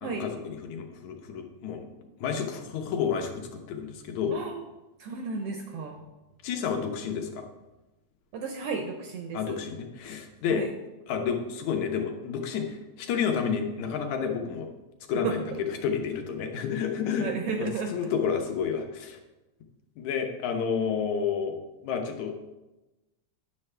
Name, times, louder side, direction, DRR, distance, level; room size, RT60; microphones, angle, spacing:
voice 1, 0.0-1.9 2.2-4.4 6.4-7.4 9.3-10.6 11.1-14.7 15.1-15.4 15.8-17.3 17.6-19.2 20.0-21.5 21.8-22.3, left 7 dB, 75° left, 4 dB, 2.2 m, -30 dB
voice 2, 4.3-4.6 5.0-6.0 8.3-9.6 10.5-10.7 15.2-15.4 17.2-17.9, right 4 dB, 80° right, 4 dB, 1.3 m, -33 dB
10.0 x 7.0 x 3.3 m, 1.1 s
omnidirectional pair, 3.5 m